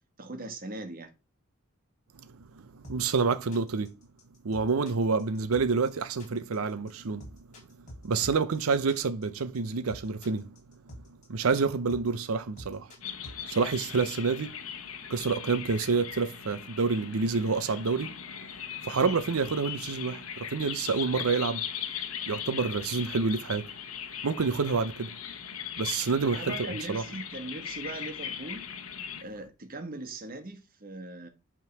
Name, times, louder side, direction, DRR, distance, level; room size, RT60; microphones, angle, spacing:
voice 1, 0.2-1.1 26.3-28.7 29.2-31.3, right 2 dB, 45° right, 1.4 m, -40 dB
sound 1, 2.8-13.4, equal, 35° left, 3.2 m, -47 dB
voice 2, 2.9-3.9 4.4-7.3 8.0-10.5 11.3-12.9 13.4-14.6 15.1-18.1 18.8-21.6 22.3-23.7 24.2-25.1 25.8-26.5 26.9-27.0, right 4 dB, 85° right, 0.6 m, -28 dB
sound 2, 13.0-29.2, left 9 dB, 85° left, 1.1 m, -39 dB
8.4 x 3.7 x 5.9 m
head